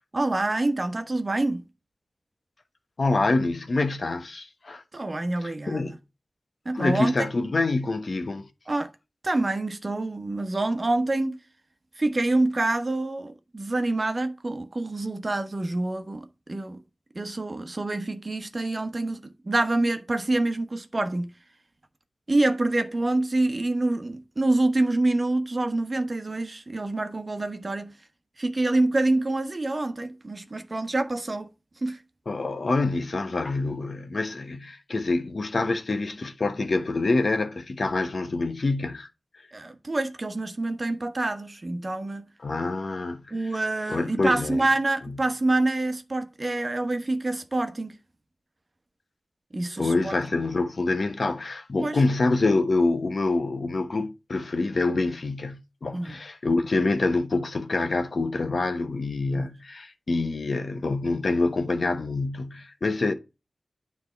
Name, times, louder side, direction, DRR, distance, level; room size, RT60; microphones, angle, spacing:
voice 1, 0.1-1.6 4.9-6.0 6.6-7.3 8.7-8.9 9.2-11.4 12.0-16.8 17.1-21.3 22.3-27.9 28.4-31.5 31.8-32.0 39.5-42.3 43.3-48.0 49.5-50.1 51.8-52.0 55.9-56.1 59.3-59.5, right 2 dB, 40° right, 1.1 m, -26 dB
voice 2, 3.0-4.8 5.7-6.0 6.7-8.5 32.3-39.1 42.4-43.3 43.9-44.7 45.1-45.2 49.8-63.1, left 3 dB, 65° left, 1.0 m, -26 dB
9.5 x 3.5 x 4.5 m
wide cardioid pair, 65°, 0 cm